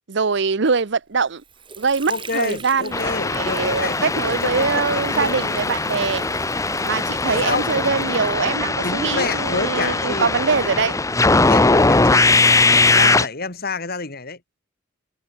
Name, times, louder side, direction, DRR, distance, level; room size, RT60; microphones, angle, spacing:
voice 1, 0.1-1.4 1.8-3.0 3.3-6.2 6.8-11.0, right 5 dB, 65° right, 0.8 m, -23 dB
Water / Sink (filling or washing), 1.1-8.8, right 4 dB, 25° right, 3.2 m, -40 dB
voice 2, 2.1-5.4 7.2-7.6 8.8-10.3 11.3-12.3 12.9-14.4, left 4 dB, 55° left, 3.2 m, -28 dB
sound 1, 2.9-13.3, left 3 dB, 15° left, 0.8 m, -20 dB
head